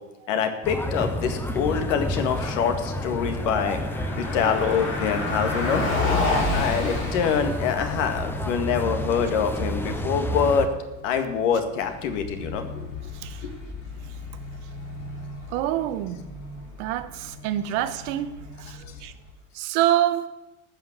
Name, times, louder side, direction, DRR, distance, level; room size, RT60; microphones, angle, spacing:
voice 1, 0.3-3.8 4.2-5.8 6.5-10.7 11.0-12.7, left 6 dB, 85° left, 2.0 m, -25 dB
sound 1, 0.6-10.7, left 1 dB, 5° left, 0.6 m, -30 dB
Car passing by, 3.2-19.3, left 3 dB, 30° left, 4.0 m, -32 dB
voice 2, 15.5-16.2 16.8-19.1 19.5-20.3, right 12 dB, 70° right, 1.1 m, -26 dB
15.0 x 5.6 x 7.6 m
cardioid pair, 150°, 37 cm